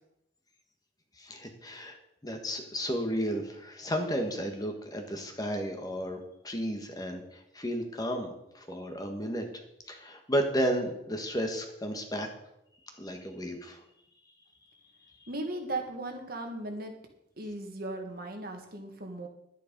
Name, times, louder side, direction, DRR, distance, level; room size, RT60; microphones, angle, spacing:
voice 1, 1.2-2.0 2.2-9.5 9.9-12.3 13.0-13.8, equal, 20° left, 4 dB, 1.5 m, -33 dB
voice 2, 15.3-16.9 17.4-19.3, right 2 dB, 55° right, 4 dB, 1.9 m, -37 dB
11.0 x 10.0 x 5.3 m, 0.82 s
head